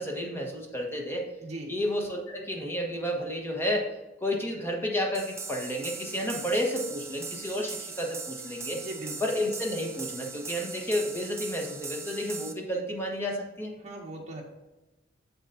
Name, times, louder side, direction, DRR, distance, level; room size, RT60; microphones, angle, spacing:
voice 1, 0.0-1.3 1.7-3.9 4.2-8.8 9.2-13.7, equal, 15° left, 0 dB, 1.3 m, -31 dB
sound 1, 5.1-12.5, right 5 dB, 15° right, 0.6 m, -40 dB
voice 2, 8.8-9.1 13.8-14.4, right 2 dB, 40° right, -1 dB, 1.7 m, -39 dB
7.7 x 7.2 x 2.7 m, 1.1 s
head